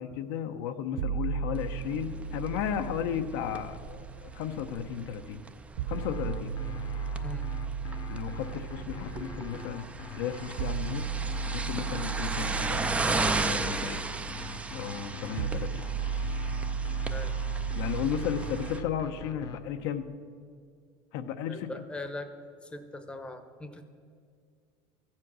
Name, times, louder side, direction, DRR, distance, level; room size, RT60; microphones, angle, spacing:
voice 1, 0.0-5.4 5.9-6.5 8.1-9.8 10.1-11.0 11.5-12.9 13.4-14.0 14.7-15.8 17.8-20.1 21.1-21.7, left 8 dB, 80° left, 8 dB, 0.8 m, -34 dB
sound 1, 1.0-5.0 5.8-19.8, right 6 dB, 80° right, 0.4 m, -36 dB
sound 2, 1.6-18.8, right 3 dB, 10° right, 0.4 m, -36 dB
sound 3, 5.9-19.6, left 4 dB, 40° left, 0.8 m, -44 dB
voice 2, 21.5-22.3 22.6-23.8, left 2 dB, 10° left, 8 dB, 0.8 m, -40 dB
14.5 x 7.5 x 6.1 m, 2.1 s
cardioid pair, 135°, 11 cm